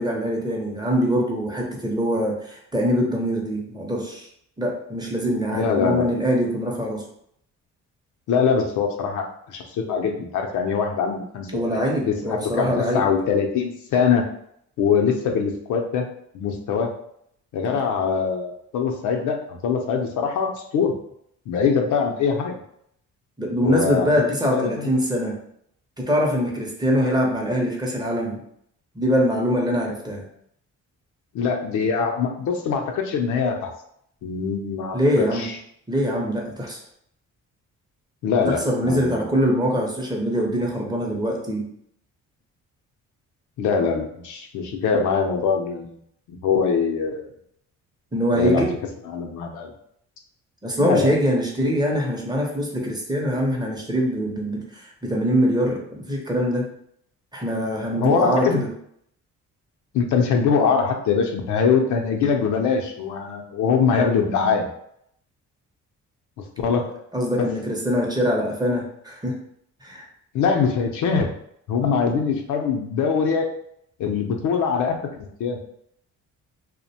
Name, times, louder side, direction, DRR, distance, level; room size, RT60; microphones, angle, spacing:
voice 1, 0.0-4.3 4.6-7.0 11.5-13.1 17.7-17.8 23.4-25.4 26.0-28.4 28.9-30.3 34.9-35.5 35.9-36.8 38.5-41.7 48.1-48.8 50.6-56.7 57.3-58.7 66.7-66.9 67.1-69.4 69.8-70.0, equal, 15° right, -1 dB, 0.6 m, -23 dB
voice 2, 5.5-6.1 8.3-14.3 14.8-16.1 16.3-16.9 17.5-20.9 21.5-22.6 23.6-24.9 31.3-33.7 34.2-35.5 38.2-39.3 43.6-46.0 46.3-47.3 48.3-48.6 49.0-49.7 50.8-51.1 51.6-51.7 57.9-58.6 59.9-64.7 66.6-66.9 70.3-71.3 71.7-73.5 74.0-75.6, left 6 dB, 80° left, 3 dB, 0.5 m, -23 dB
2.4 x 2.1 x 2.7 m, 0.69 s
cardioid pair, 90°, 30 cm